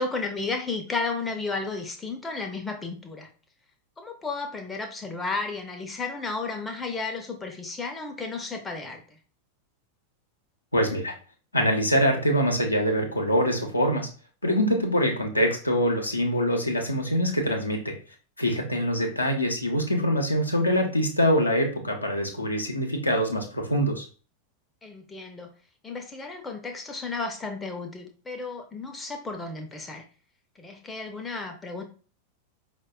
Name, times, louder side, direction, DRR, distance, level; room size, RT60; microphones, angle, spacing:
voice 1, 0.0-3.3 4.0-9.2 24.8-25.5 25.8-30.0 30.6-31.8, left 3 dB, 15° left, 4 dB, 0.5 m, -33 dB
voice 2, 10.7-11.1 11.5-14.1 14.4-17.9 18.4-24.0, equal, 85° left, 1 dB, 0.6 m, -24 dB
4.6 x 2.2 x 2.2 m, 0.38 s
figure-of-eight pair, 90°, 0 cm